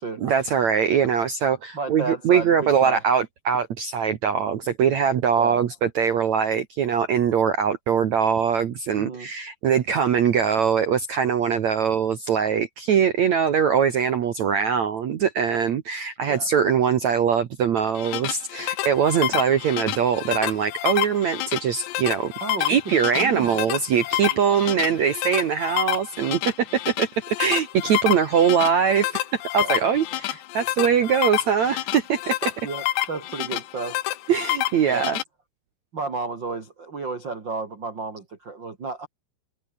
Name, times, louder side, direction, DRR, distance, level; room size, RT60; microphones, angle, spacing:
voice 1, 0.2-22.3 22.6-27.1 27.4-32.5 34.3-35.2, right 7 dB, 65° right, 1.8 m, -22 dB
voice 2, 1.7-3.0 5.4-5.6 8.9-9.3 16.3-16.5 22.4-23.6 24.4-24.6 29.6-30.0 32.6-34.0 34.9-35.0 35.9-39.1, right 4 dB, 30° right, 2.6 m, -32 dB
sound 1, 17.8-35.2, left 15 dB, 75° left, 3.2 m, -28 dB
omnidirectional pair, 5.2 m